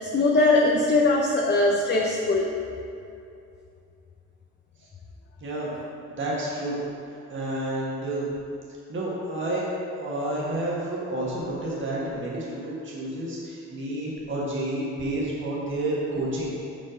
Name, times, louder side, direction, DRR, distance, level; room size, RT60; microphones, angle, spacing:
voice 1, 0.0-2.5, left 2 dB, 35° left, -2 dB, 0.7 m, -21 dB
voice 2, 5.4-5.7 6.1-6.8 7.1-8.3 8.9-9.6 10.0-16.5, right 1 dB, 40° right, -6 dB, 1.6 m, -30 dB
5.7 x 5.4 x 5.1 m, 2.6 s
cardioid pair, 90°, 30 cm